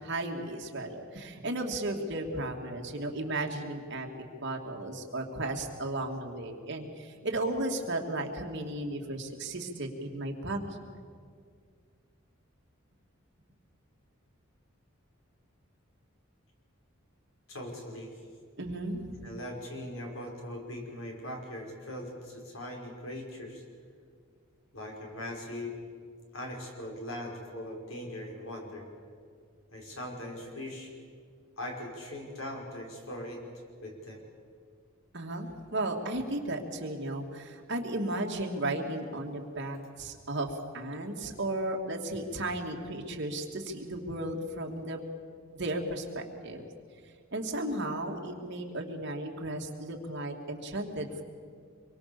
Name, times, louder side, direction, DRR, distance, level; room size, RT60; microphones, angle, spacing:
voice 1, 0.0-4.1 4.4-10.9 18.6-19.3 35.1-45.0 45.5-46.6 47.3-51.2, right 1 dB, 60° right, 2 dB, 2.7 m, -35 dB
voice 2, 17.5-18.2 19.2-23.6 24.7-25.8 26.3-28.9 29.7-30.9 31.6-33.4 33.8-34.3, left 1 dB, 75° left, 1 dB, 5.3 m, -40 dB
25.5 x 23.0 x 7.1 m, 2.1 s
head